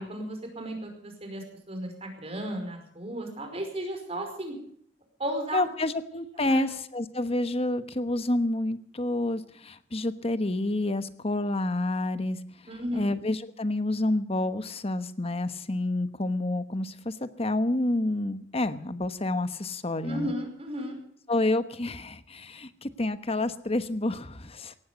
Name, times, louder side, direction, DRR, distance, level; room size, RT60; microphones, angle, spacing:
voice 1, 0.0-4.5 5.2-5.6 6.4-6.7 12.7-13.1 20.0-21.0, right 1 dB, 35° right, 4 dB, 5.2 m, -34 dB
voice 2, 5.5-12.4 12.9-20.3 21.3-24.8, left 2 dB, 35° left, 12 dB, 1.1 m, -29 dB
18.5 x 15.5 x 5.1 m, 0.63 s
head